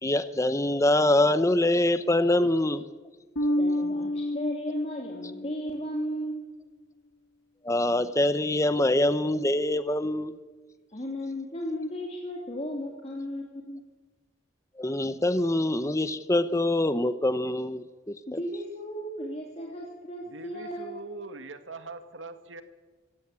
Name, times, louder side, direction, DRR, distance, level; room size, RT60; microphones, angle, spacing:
voice 1, 0.0-2.9 7.6-10.3 14.8-17.8 18.3-18.4, left 1 dB, 15° left, 13 dB, 0.8 m, -24 dB
Bass guitar, 3.4-6.0, left 1 dB, 85° left, 2.0 m, -30 dB
voice 2, 3.6-6.5 10.9-13.8 18.3-20.9, equal, 35° left, -1 dB, 2.8 m, -35 dB
voice 3, 20.3-22.6, right 3 dB, 90° right, 9 dB, 1.9 m, -42 dB
24.0 x 16.5 x 8.7 m, 1.4 s
head